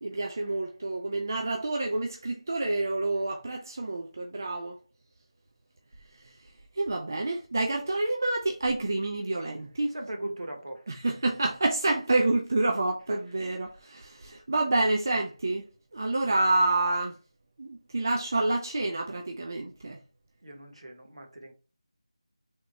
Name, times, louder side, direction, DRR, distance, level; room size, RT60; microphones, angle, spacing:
voice 1, 0.0-4.8 6.8-10.0 10.9-15.6 15.9-17.1 17.6-20.0, right 2 dB, 30° right, 0.3 m, -28 dB
voice 2, 9.9-10.8 20.4-21.5, right 1 dB, 60° right, 1.0 m, -39 dB
3.5 x 2.0 x 3.8 m
figure-of-eight pair, 175°, 3 cm